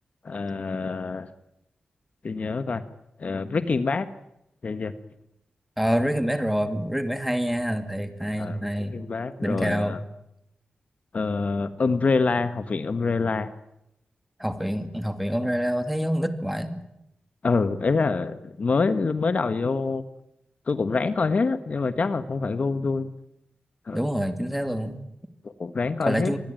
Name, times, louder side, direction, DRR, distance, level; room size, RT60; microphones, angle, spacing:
voice 1, 0.2-1.3 2.2-2.8 3.2-4.1 4.6-4.9 8.4-10.0 11.1-13.5 17.4-20.0 20.7-23.1 23.9-24.0 25.4-26.3, left 4 dB, 50° left, 12 dB, 1.4 m, -26 dB
voice 2, 5.8-9.0 9.4-10.0 14.4-16.8 23.9-25.1 26.0-26.4, equal, 5° right, 9 dB, 2.4 m, -26 dB
25.5 x 20.0 x 9.1 m, 0.82 s
wide cardioid pair, 110°, 3 cm